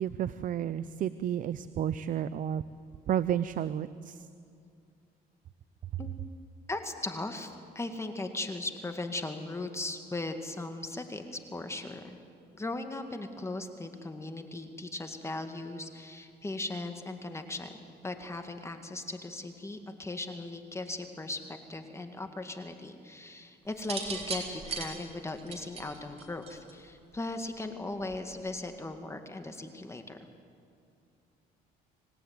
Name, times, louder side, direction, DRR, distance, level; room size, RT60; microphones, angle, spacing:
voice 1, 0.0-2.6 3.1-4.3, right 10 dB, 50° right, 14 dB, 0.7 m, -31 dB
voice 2, 6.7-12.2 12.5-17.7 18.0-30.2, left 2 dB, 15° left, 6 dB, 2.0 m, -38 dB
sound 1, 23.8-26.9 28.0-28.4, right 4 dB, 35° right, 4.1 m, -38 dB
26.0 x 17.5 x 9.5 m, 2.5 s
cardioid pair, 110°, 17 cm